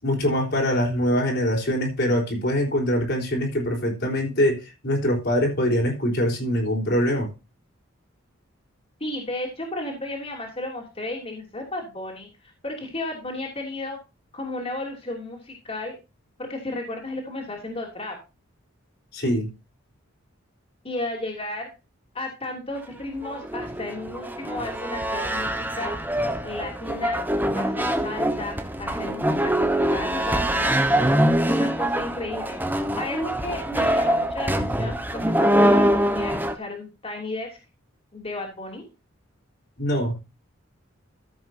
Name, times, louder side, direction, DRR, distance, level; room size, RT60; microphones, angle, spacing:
voice 1, 0.0-7.3 19.1-19.5 39.8-40.2, equal, 55° left, 0 dB, 3.8 m, -23 dB
voice 2, 9.0-14.0 14.3-16.0 16.4-18.1 20.8-21.7 22.1-25.9 26.4-27.2 27.5-30.7 31.5-37.6 38.1-38.9, left 2 dB, 30° left, 0 dB, 3.1 m, -33 dB
sound 1, 23.0-36.5, right 1 dB, 10° right, 1.1 m, -24 dB
14.0 x 7.9 x 2.7 m, 0.27 s
head